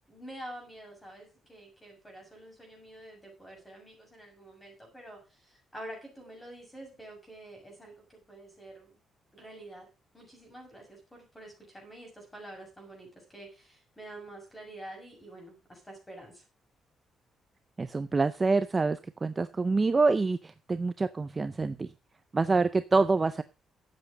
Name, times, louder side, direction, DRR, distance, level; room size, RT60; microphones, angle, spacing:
voice 1, 0.1-9.0 9.3-9.9 10.1-16.4, right 1 dB, 10° left, 1 dB, 6.7 m, -47 dB
voice 2, 17.8-21.9 22.3-23.4, right 3 dB, 20° right, 11 dB, 0.5 m, -26 dB
12.5 x 8.1 x 5.1 m, 0.30 s
cardioid pair, 170°, 0 cm